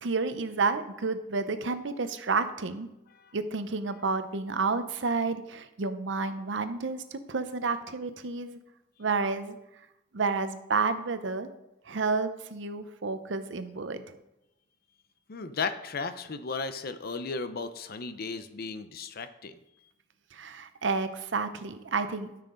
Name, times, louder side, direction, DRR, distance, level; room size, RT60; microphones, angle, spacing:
voice 1, 0.0-2.9 3.3-8.6 9.0-9.6 10.1-11.5 11.9-14.2 20.3-22.3, right 4 dB, 70° right, 10 dB, 0.7 m, -30 dB
voice 2, 15.3-19.5, left 4 dB, 55° left, 11 dB, 0.6 m, -35 dB
12.5 x 5.9 x 3.8 m, 0.89 s
head